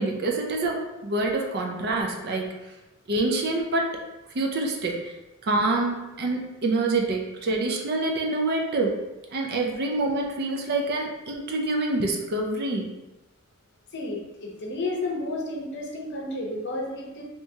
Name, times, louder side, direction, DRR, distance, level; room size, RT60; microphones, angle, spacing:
voice 1, 0.0-2.5 3.1-4.0 4.3-5.1 5.4-9.0 9.3-12.9, right 2 dB, 45° right, 1 dB, 0.5 m, -26 dB
voice 2, 13.9-17.2, left 2 dB, 50° left, -1 dB, 0.7 m, -32 dB
3.4 x 2.9 x 2.7 m, 1.0 s
head